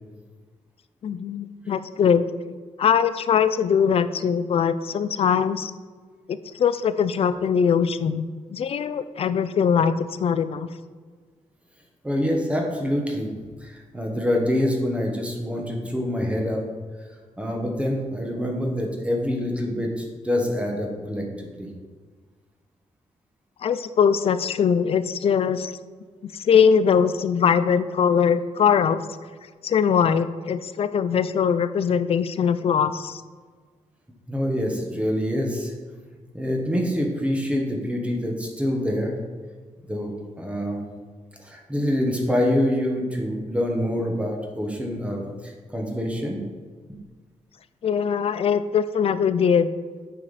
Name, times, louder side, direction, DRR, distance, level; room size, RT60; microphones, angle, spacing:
voice 1, 1.0-5.7 6.3-8.2 8.5-10.7 23.6-25.7 26.2-29.0 29.6-33.2 47.8-49.7, left 7 dB, 50° left, 13 dB, 0.4 m, -21 dB
voice 2, 12.0-13.3 13.6-16.6 17.4-21.2 21.6-21.7 34.3-35.7 36.3-39.1 39.9-40.8 41.4-46.4, left 1 dB, 10° right, 0 dB, 1.1 m, -26 dB
8.4 x 5.1 x 4.1 m, 1.5 s
wide cardioid pair, 155°, 13 cm